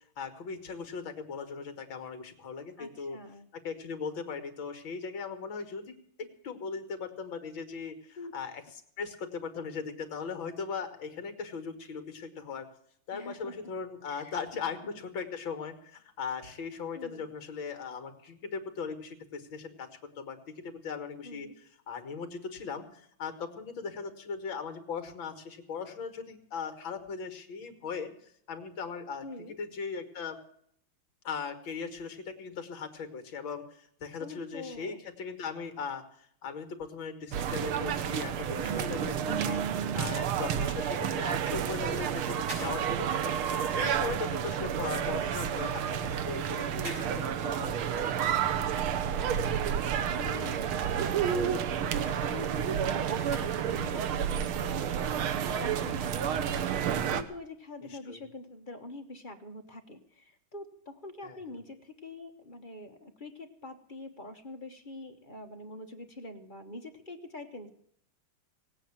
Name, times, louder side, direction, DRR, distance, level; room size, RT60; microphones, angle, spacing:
voice 1, 0.2-3.2 3.5-8.6 9.0-12.7 13.1-19.9 20.2-28.1 28.5-30.4 31.2-36.0 36.4-39.6 39.9-43.3 43.7-47.9 54.6-55.0 57.9-58.2 61.2-61.4, left 5 dB, 65° left, 8 dB, 2.5 m, -39 dB
voice 2, 2.8-3.5 8.2-8.3 13.1-13.6 14.1-15.0 16.9-17.2 21.2-21.5 29.2-29.6 34.2-35.0 39.3-39.6 44.5-44.8 49.2-56.7 57.1-67.7, left 2 dB, 30° left, 4 dB, 1.2 m, -45 dB
sound 1, 37.3-57.2, right 8 dB, 85° right, 1.9 m, -30 dB
sound 2, 42.4-43.7 44.0-50.0 50.3-54.1 54.6-54.7, right 1 dB, 50° right, 6.8 m, -49 dB
17.5 x 8.9 x 7.3 m, 0.67 s
omnidirectional pair, 2.3 m